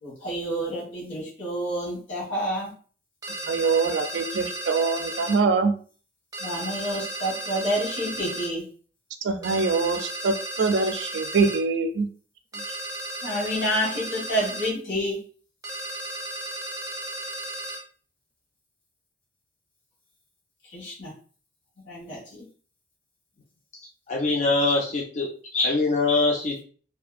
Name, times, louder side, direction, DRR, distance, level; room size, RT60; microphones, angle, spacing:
voice 1, 0.0-2.7 6.4-8.6 13.2-15.2 20.7-21.1 21.8-22.4, equal, 80° left, -6 dB, 1.3 m, -29 dB
sound 1, 3.2-5.4 6.3-8.5 9.4-11.6 12.5-14.7 15.6-17.8, right 1 dB, 15° right, 0.5 m, -34 dB
voice 2, 3.5-5.7 9.2-12.1, right 4 dB, 70° right, 8 dB, 0.4 m, -24 dB
voice 3, 24.1-26.6, left 3 dB, 40° left, 0 dB, 0.4 m, -23 dB
2.6 x 2.5 x 2.4 m, 0.42 s
head